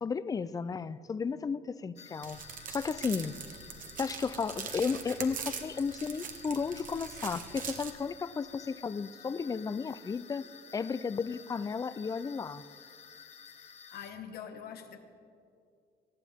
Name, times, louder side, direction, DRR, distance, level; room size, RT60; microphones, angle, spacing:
voice 1, 0.0-2.4 2.7-3.3 4.0-12.6, left 5 dB, 20° left, 16 dB, 0.4 m, -34 dB
sound 1, 2.0-14.1, left 7 dB, 40° left, 0.8 m, -52 dB
sound 2, 2.2-7.9, right 7 dB, 55° right, 1.3 m, -42 dB
voice 2, 13.6-15.0, left 8 dB, 65° left, 6 dB, 1.3 m, -45 dB
19.0 x 14.0 x 3.6 m, 2.4 s
cardioid pair, 110°, 17 cm